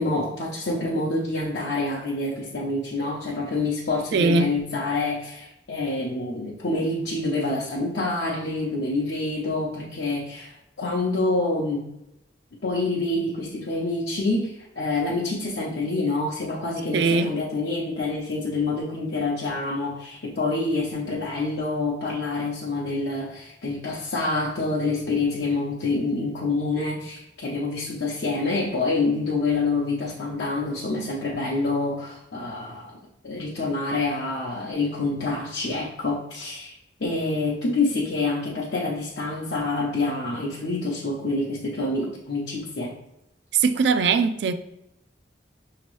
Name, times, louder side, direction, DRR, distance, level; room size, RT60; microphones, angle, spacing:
voice 1, 0.0-11.9 12.6-33.0 33.2-36.7 37.0-43.0, left 2 dB, 70° left, 0.7 m, -27 dB
voice 2, 4.1-4.6 16.9-17.4 43.5-44.5, right 4 dB, 65° right, 0.3 m, -21 dB
6.0 x 2.9 x 3.1 m
head